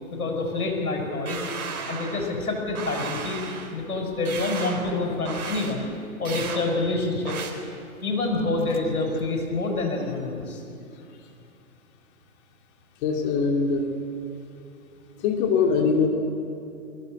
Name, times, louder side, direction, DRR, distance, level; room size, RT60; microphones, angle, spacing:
voice 1, 0.1-1.5 1.9-3.4 3.7-5.9 6.2-7.4 8.0-10.6, left 2 dB, 85° left, 2 dB, 6.5 m, -27 dB
sound 1, 1.3-2.4 2.8-3.7 4.3-4.9 5.3-5.7 6.3-6.6 7.3-7.5, right 5 dB, 75° right, 3.8 m, -34 dB
sound 2, 4.9-6.0 7.0-7.4 8.0-8.1 8.3-8.9 9.1-9.3 9.8-10.4, left 9 dB, 15° left, 0.7 m, -40 dB
voice 2, 13.0-13.9 15.2-16.1, left 5 dB, 35° left, 2 dB, 2.4 m, -22 dB
23.5 x 15.5 x 8.1 m, 2.6 s
hypercardioid pair, 135°, 43 cm